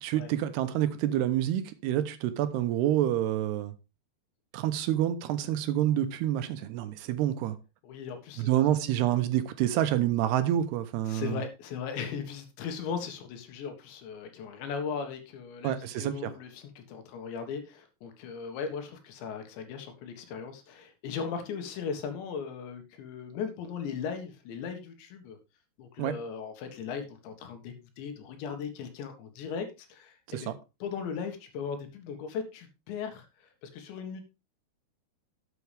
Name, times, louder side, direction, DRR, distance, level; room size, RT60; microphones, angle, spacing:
voice 1, 0.0-3.7 4.5-7.6 8.4-11.4 15.6-16.3 26.0-26.2 30.3-30.5, right 12 dB, 80° right, 2.8 m, -28 dB
voice 2, 7.8-8.7 11.1-25.4 25.8-30.5 30.8-34.2, left 6 dB, 90° left, 4.0 m, -38 dB
12.5 x 8.3 x 3.4 m
omnidirectional pair, 5.0 m